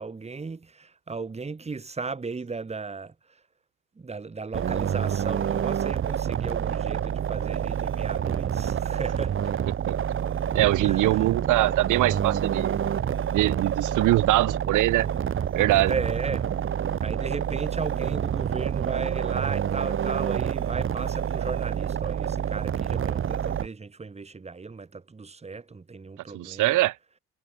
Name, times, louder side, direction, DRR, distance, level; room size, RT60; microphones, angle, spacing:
voice 1, 0.0-3.1 4.0-9.4 10.8-11.3 15.9-16.5 17.0-26.8, right 4 dB, 20° right, 1.4 m, -35 dB
sound 1, 4.5-23.7, right 9 dB, 45° right, 0.9 m, -28 dB
voice 2, 10.5-12.8 13.3-15.1 15.5-15.9 26.3-26.9, right 17 dB, 85° right, 0.8 m, -22 dB
cardioid pair, 90°, 30 cm